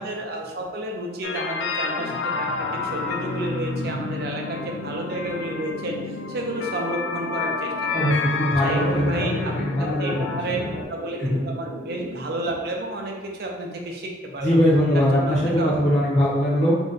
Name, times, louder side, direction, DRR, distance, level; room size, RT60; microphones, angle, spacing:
voice 1, 0.0-6.0 6.3-8.1 8.6-11.2 11.4-14.6 14.9-15.7, right 1 dB, 55° right, 1 dB, 0.5 m, -31 dB
sound 1, 1.2-10.8, left 4 dB, 85° left, 0.3 m, -29 dB
sound 2, 2.6-12.6, right 1 dB, 5° right, 0.7 m, -41 dB
voice 2, 3.9-4.2 7.9-10.4 11.2-11.4 14.4-16.8, equal, 40° left, -8 dB, 0.6 m, -21 dB
2.6 x 2.1 x 3.8 m, 1.4 s
head